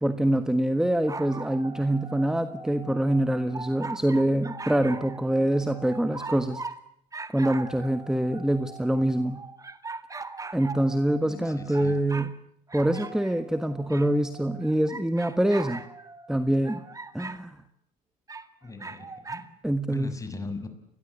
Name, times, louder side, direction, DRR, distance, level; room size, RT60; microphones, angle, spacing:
voice 1, 0.0-6.6 7.3-9.4 10.5-12.3 12.7-15.8 16.3-16.8 17.1-17.6 19.6-20.1, right 1 dB, 5° right, 10 dB, 1.4 m, -25 dB
sound 1, 1.0-6.8 7.1-12.3 12.7-17.4 18.3-19.5, right 3 dB, 20° right, 2.0 m, -41 dB
voice 2, 11.2-12.0 18.6-19.4 19.9-20.6, left 3 dB, 20° left, 8 dB, 6.2 m, -39 dB
30.0 x 21.5 x 8.3 m, 0.72 s
cardioid pair, 110°, 17 cm